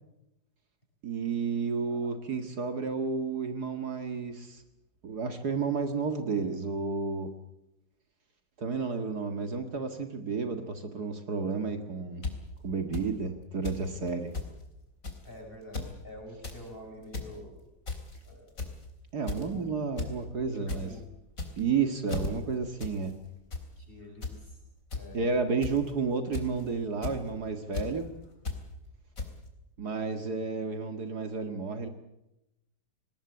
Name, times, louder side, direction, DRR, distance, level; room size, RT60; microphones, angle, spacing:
voice 1, 1.0-4.6 5.0-7.3 8.6-12.2 12.6-14.3 19.1-20.9 21.6-23.1 25.1-28.1 29.8-31.9, right 4 dB, 60° right, 7 dB, 2.4 m, -31 dB
sound 1, 12.2-12.3 12.9-13.0 13.6-13.8 14.1-14.2 14.3-14.5 15.0-15.3 15.6-15.9 16.3-16.6 17.0-17.3 17.9-18.2 18.6-18.8 19.3-19.5 20.0-20.1 20.4-20.8 21.3-21.7 22.1-22.3 22.8-23.0 23.3-23.6 24.2-24.4 24.9-25.0 25.6-25.9 26.3-26.6 27.0-27.2 27.7-27.9 28.5-28.6 29.2-29.3, left 3 dB, 50° left, 4.1 m, -34 dB
voice 2, 12.7-13.1 15.2-17.6 18.2-18.5 19.3-19.7 20.0-20.1 20.7-21.0 23.8-24.6 24.9-25.7, left 1 dB, 30° left, 1 dB, 7.9 m, -47 dB
20.5 x 20.0 x 8.5 m, 0.89 s
omnidirectional pair, 1.9 m